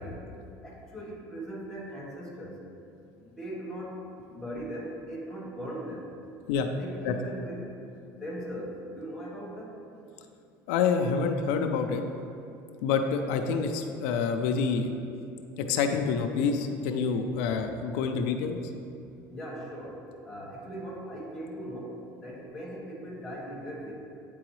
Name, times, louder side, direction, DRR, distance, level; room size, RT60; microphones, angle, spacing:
voice 1, 0.0-2.6 3.2-4.0 4.3-6.1 6.8-7.7 8.2-9.8 19.3-20.0 20.2-23.9, equal, 5° left, -4 dB, 1.2 m, -39 dB
voice 2, 10.7-12.0 12.8-14.9 15.6-18.6, left 5 dB, 90° left, 5 dB, 0.4 m, -27 dB
8.6 x 3.8 x 3.1 m, 2.6 s
cardioid pair, 135°, 7 cm